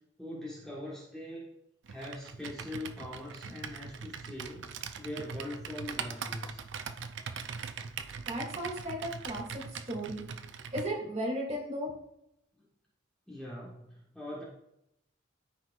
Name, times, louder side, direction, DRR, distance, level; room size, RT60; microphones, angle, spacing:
voice 1, 0.2-1.5 1.9-6.6 13.3-14.4, left 1 dB, 5° left, -6 dB, 1.3 m, -42 dB
Computer keyboard, 1.9-10.9, right 6 dB, 65° right, 0.5 m, -41 dB
voice 2, 8.3-9.4 9.9-10.2 10.7-11.9, right 1 dB, 35° right, -3 dB, 2.3 m, -35 dB
13.0 x 4.5 x 2.4 m, 0.80 s
head